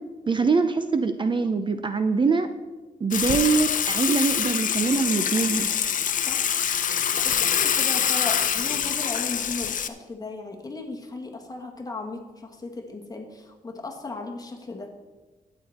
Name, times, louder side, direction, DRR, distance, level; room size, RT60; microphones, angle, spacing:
voice 1, 0.3-2.5 3.0-5.7, right 4 dB, 35° right, 9 dB, 0.6 m, -23 dB
Water / Water tap faucet / Sink (filling or washing), 3.1-9.9, left 8 dB, 60° left, 0.6 m, -25 dB
voice 2, 7.2-14.9, left 3 dB, 25° left, 2 dB, 1.7 m, -36 dB
12.5 x 9.0 x 4.3 m, 1.3 s
wide cardioid pair, 115°, 15 cm